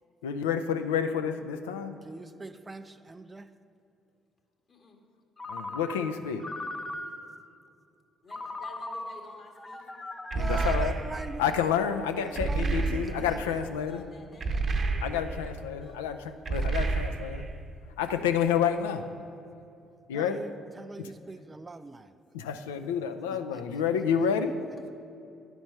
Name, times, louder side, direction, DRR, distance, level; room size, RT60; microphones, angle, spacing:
voice 1, 0.2-1.9 5.5-6.5 10.3-11.0 11.4-14.1 15.0-16.2 16.5-17.5 18.0-19.0 20.1-20.5 21.0-21.1 22.3-24.6, left 7 dB, 90° left, 8 dB, 0.4 m, -29 dB
voice 2, 2.0-3.5 10.3-11.5 12.2-13.4 20.1-22.1 23.3-23.6, right 3 dB, 25° right, 8 dB, 0.4 m, -41 dB
voice 3, 4.7-5.0 8.2-9.8 13.4-16.0, left 2 dB, 50° left, 2 dB, 1.6 m, -52 dB
Ringtone, 5.4-7.5 8.3-11.6, left 2 dB, 20° left, 0.6 m, -40 dB
sound 1, 10.3-11.4 12.4-13.4 14.4-15.5 16.5-17.5, right 3 dB, 45° right, 0.7 m, -29 dB
10.5 x 4.4 x 5.5 m, 2.6 s
hypercardioid pair, 55°, 0 cm